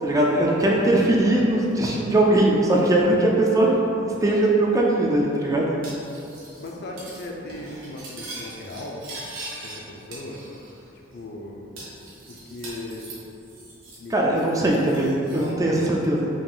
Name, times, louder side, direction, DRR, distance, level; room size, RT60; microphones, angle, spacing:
voice 1, 0.0-3.7 3.9-5.7 14.1-16.3, right 1 dB, 15° right, -2 dB, 0.3 m, -20 dB
Cutlery silverware, 5.8-6.7 7.0-7.2 7.5-9.8 10.1-10.8 11.1-11.2 11.8-14.1 14.3-15.5, right 2 dB, 80° right, 1.0 m, -41 dB
voice 2, 6.6-9.0 9.6-10.4 11.1-11.6 12.3-13.1 14.0-14.1 14.4-15.8, left 1 dB, 55° left, -1 dB, 0.5 m, -37 dB
3.8 x 2.5 x 3.7 m, 2.7 s
head